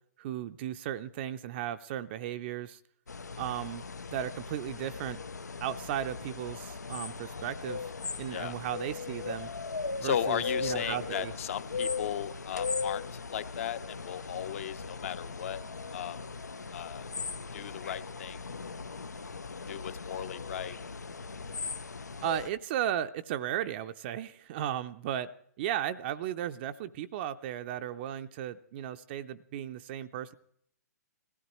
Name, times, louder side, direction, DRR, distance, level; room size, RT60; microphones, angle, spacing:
voice 1, 0.2-2.8 3.4-3.8 4.1-5.2 5.6-7.9 8.2-9.5 10.0-11.3 22.2-25.3 25.6-30.3, right 11 dB, 40° right, 9 dB, 0.5 m, -35 dB
sound 1, 3.1-22.5, left 4 dB, 85° left, 0.6 m, -38 dB
voice 2, 10.0-15.6 15.9-16.2 16.7-17.1 17.5-18.5 19.7-20.8, left 9 dB, 55° left, 13 dB, 0.9 m, -36 dB
21.5 x 16.0 x 3.1 m, 0.66 s
figure-of-eight pair, 125°, 9 cm